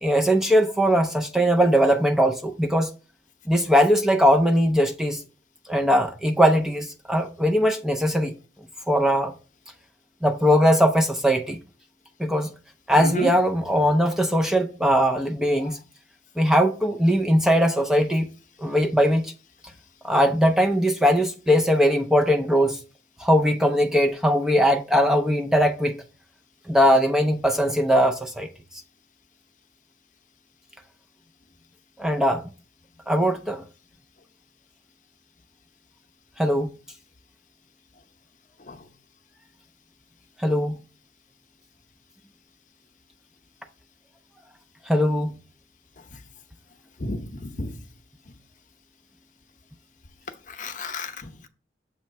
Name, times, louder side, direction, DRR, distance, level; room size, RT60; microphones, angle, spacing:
voice 1, 0.0-2.9 3.5-5.2 5.7-8.3 8.9-9.3 10.2-11.6 12.2-12.5 12.9-15.8 16.4-18.3 18.6-19.3 20.0-22.8 23.2-26.0 26.7-28.5 32.0-32.4 33.1-33.6 36.4-36.7 40.4-40.8 44.9-45.3, equal, 5° right, 0.5 m, -20 dB
voice 2, 12.9-13.3 15.6-15.7 38.7-38.9 46.1-46.2 47.0-47.8 50.5-51.5, left 2 dB, 45° left, 0.8 m, -32 dB
7.2 x 3.1 x 5.6 m
head